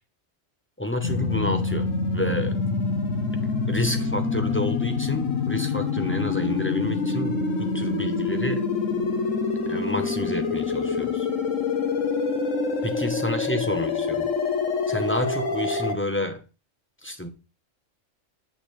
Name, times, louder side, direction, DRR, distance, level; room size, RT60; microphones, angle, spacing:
voice 1, 0.8-2.6 3.7-8.6 9.7-11.3 12.8-14.3 14.9-16.4 17.0-17.3, left 1 dB, 10° left, 0.7 m, -30 dB
sound 1, 1.0-15.9, left 4 dB, 85° left, 1.4 m, -26 dB
9.4 x 6.3 x 3.2 m
omnidirectional pair, 1.3 m